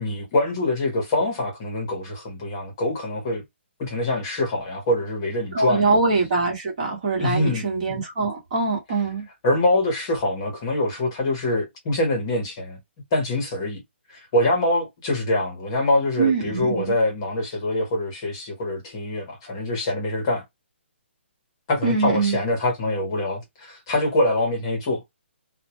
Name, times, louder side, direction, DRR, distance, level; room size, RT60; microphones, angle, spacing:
voice 1, 0.0-3.4 3.8-6.0 7.2-7.6 9.4-12.8 13.1-13.8 14.1-20.4 21.7-25.0, left 1 dB, 20° left, 0.8 m, -24 dB
voice 2, 5.5-9.2 16.2-16.9 21.8-22.4, right 4 dB, 35° right, 1.0 m, -23 dB
2.1 x 2.1 x 2.8 m
hypercardioid pair, 175°, 7 cm